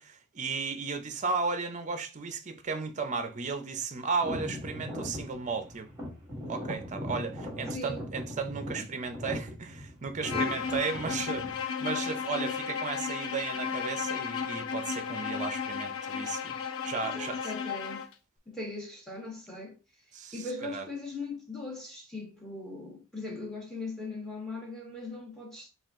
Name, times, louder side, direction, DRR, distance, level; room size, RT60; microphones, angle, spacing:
voice 1, 0.0-5.9 6.5-16.6 16.8-17.5 20.1-20.9, right 4 dB, 35° right, 0.6 m, -34 dB
sound 1, 4.2-11.6, left 1 dB, 15° right, 1.6 m, -39 dB
voice 2, 7.7-8.0 10.3-10.6 17.0-18.1 18.5-19.8 20.3-25.7, left 2 dB, ahead, 1.3 m, -39 dB
Bowed string instrument, 10.2-18.1, left 6 dB, 65° left, 0.5 m, -34 dB
4.2 x 2.4 x 3.6 m
head